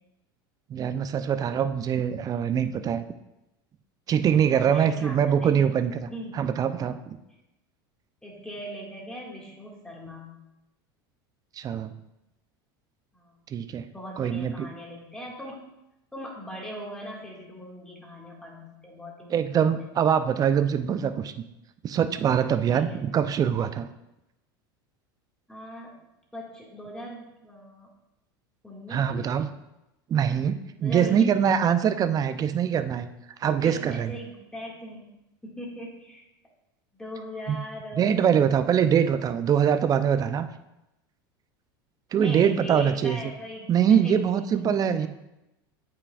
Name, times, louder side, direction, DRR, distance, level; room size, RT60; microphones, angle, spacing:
voice 1, 0.7-3.0 4.1-6.1 6.3-7.2 11.6-11.9 13.5-13.8 14.2-14.7 19.3-21.3 21.8-23.9 28.9-29.5 30.1-33.1 33.4-34.1 37.5-37.6 38.0-40.5 42.1-43.2 43.7-45.1, right 8 dB, 30° right, 11 dB, 0.5 m, -23 dB
voice 2, 4.5-5.7 6.1-6.4 8.2-10.4 13.1-13.4 13.8-15.6 16.1-19.8 22.7-23.0 25.5-25.9 26.3-27.9 28.6-29.3 30.8-31.4 33.6-35.1 35.4-36.2 37.0-38.3 42.2-44.9, equal, 5° left, -3 dB, 1.9 m, -40 dB
8.4 x 5.0 x 2.4 m, 0.92 s
hypercardioid pair, 100°, 12 cm